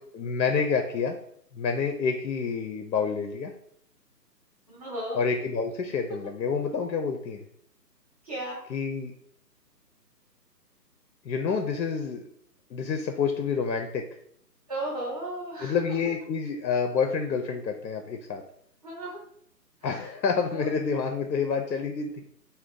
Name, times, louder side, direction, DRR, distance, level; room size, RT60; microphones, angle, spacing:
voice 1, 0.1-1.2 1.5-3.5 5.1-7.4 8.7-9.1 11.2-12.3 12.7-14.0 15.6-18.4 19.8-22.2, left 5 dB, 90° left, 5 dB, 0.6 m, -28 dB
voice 2, 4.7-5.2 8.2-8.6 14.7-15.8 18.8-19.2 19.8-20.2 20.5-20.7, right 1 dB, 25° right, -6 dB, 0.6 m, -35 dB
2.5 x 2.2 x 3.6 m, 0.67 s
figure-of-eight pair, 150°, 50 cm